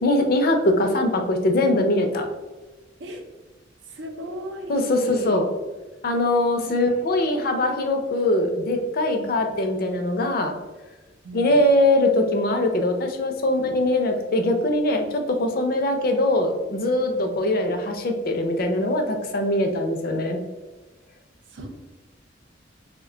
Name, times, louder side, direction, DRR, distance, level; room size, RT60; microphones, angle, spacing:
voice 1, 0.0-2.3 4.7-5.5 6.0-10.5 11.3-20.4, left 1 dB, 50° left, 5 dB, 0.4 m, -22 dB
voice 2, 3.9-5.4 6.6-6.7 9.2-9.5 11.2-11.6 17.1-17.4 21.5-21.7, right 1 dB, 85° right, 3 dB, 0.6 m, -35 dB
3.1 x 2.1 x 3.7 m, 1.2 s
head